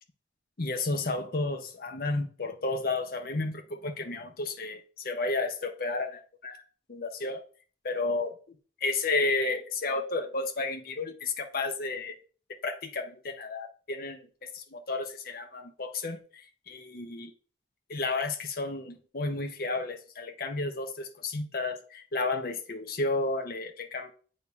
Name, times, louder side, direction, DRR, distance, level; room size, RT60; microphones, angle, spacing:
voice 1, 0.6-6.6 6.9-7.4 7.8-8.4 8.8-12.2 12.6-17.3 17.9-24.1, left 3 dB, 55° left, 0.8 m, -32 dB
8.5 x 2.9 x 4.7 m
head